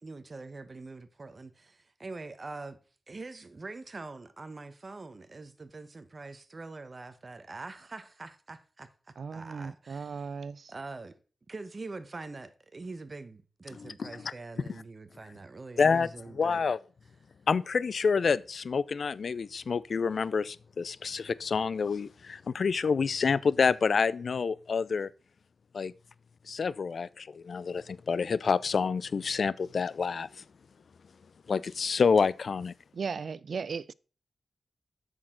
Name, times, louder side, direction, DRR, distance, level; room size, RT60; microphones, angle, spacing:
voice 1, 0.0-2.8 3.1-8.9 9.3-10.2 10.7-11.1 11.5-16.6, right 3 dB, 45° right, 1.0 m, -44 dB
voice 2, 9.2-10.7 32.9-33.9, right 5 dB, 75° right, 0.3 m, -36 dB
voice 3, 13.8-14.1 15.8-16.1 16.3-16.8 17.5-25.1 25.7-25.9 26.5-30.3 31.5-32.7, left 5 dB, 75° left, 0.4 m, -28 dB
8.6 x 6.4 x 3.8 m
cardioid pair, 55°, 0 cm